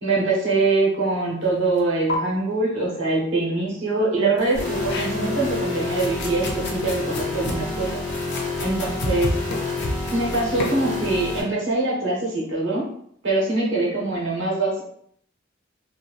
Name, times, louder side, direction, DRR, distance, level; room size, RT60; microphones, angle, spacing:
voice 1, 0.0-7.9 8.6-9.3 10.1-12.8 13.2-14.8, right 2 dB, 65° right, -3 dB, 0.9 m, -23 dB
sound 1, 1.8-1.9 2.1-2.2 4.4-5.4 5.8-10.8, left 2 dB, 60° left, 0.5 m, -31 dB
sound 2, 4.5-11.4, left 3 dB, 15° left, 0.9 m, -29 dB
2.6 x 2.1 x 2.3 m, 0.65 s
head